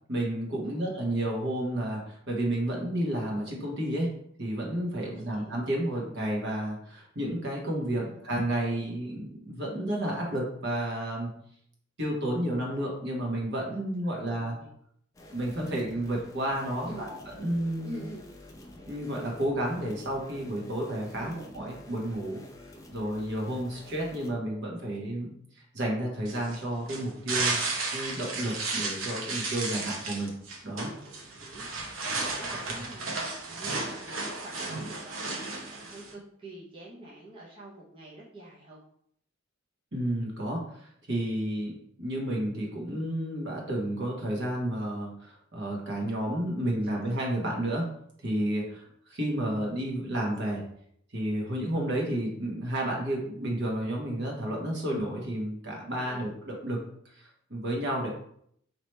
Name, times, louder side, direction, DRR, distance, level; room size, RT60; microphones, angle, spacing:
voice 1, 0.1-4.1 4.4-11.4 12.0-14.5 15.3-18.0 18.9-22.4 22.9-27.6 27.9-30.3 30.6-30.9 39.9-47.9 48.2-50.6 51.1-56.8 57.1-58.1, right 1 dB, 60° right, -1 dB, 1.2 m, -31 dB
voice 2, 0.6-0.9 5.0-5.5 5.9-6.1 7.9-8.2 13.7-14.7 16.8-17.1 17.8-18.3 21.2-21.5 23.4-23.9 31.3-31.6 32.0-38.8 45.9-46.0 46.9-47.2 56.1-56.3, right 1 dB, 25° right, -6 dB, 0.7 m, -46 dB
sound 1, 15.1-24.3, left 1 dB, 15° left, 0.5 m, -49 dB
sound 2, 26.3-36.1, right 3 dB, 85° right, 0.8 m, -34 dB
3.2 x 2.9 x 4.3 m, 0.68 s
head